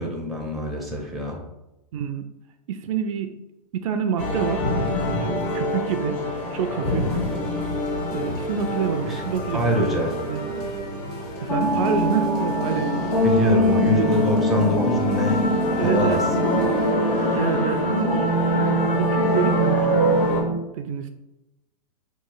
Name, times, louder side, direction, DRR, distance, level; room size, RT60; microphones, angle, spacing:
voice 1, 0.0-1.4 9.1-9.2 9.5-10.1 13.2-16.2 16.6-16.7, equal, ahead, -1 dB, 0.5 m, -25 dB
voice 2, 1.9-2.2 2.7-3.4 3.7-4.7 5.0-6.2 6.5-7.1 8.1-9.9 10.2-10.6 11.4-13.0 13.7-14.3 15.8-16.2 17.4-18.3 18.8-20.2 20.7-21.1, right 7 dB, 55° right, 8 dB, 0.4 m, -27 dB
sound 1, 4.2-20.4, left 1 dB, 45° left, 1.0 m, -27 dB
sound 2, 6.8-16.9, right 2 dB, 70° left, 1.1 m, -38 dB
sound 3, 11.5-20.6, equal, 90° left, 0.9 m, -23 dB
3.1 x 2.4 x 3.8 m, 0.96 s
hypercardioid pair, 130°, 20 cm